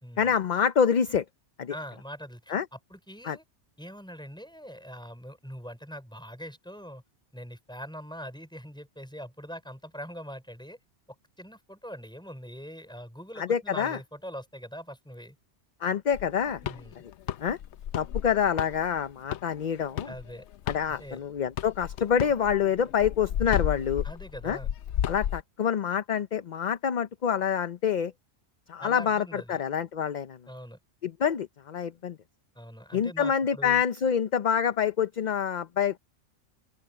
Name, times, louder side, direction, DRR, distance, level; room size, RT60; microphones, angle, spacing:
voice 1, 0.2-1.2 1.6-1.7 2.5-2.7 3.2-3.4 13.4-14.0 15.8-16.6 17.4-17.6 17.9-20.1 20.7-24.0 24.4-24.6 25.1-28.1 28.7-30.4 31.0-32.2 32.9-36.0, left 8 dB, 45° left, 0.7 m, -26 dB
voice 2, 1.7-3.4 3.8-7.0 7.3-10.8 11.4-15.4 16.6-17.0 20.1-20.4 20.9-21.2 24.0-24.7 28.8-29.6 30.5-30.8 32.6-33.8, equal, 5° left, 5.4 m, -42 dB
sound 1, 16.1-21.2 21.6-25.4, left 11 dB, 75° left, 0.9 m, -33 dB
open air
omnidirectional pair, 1.2 m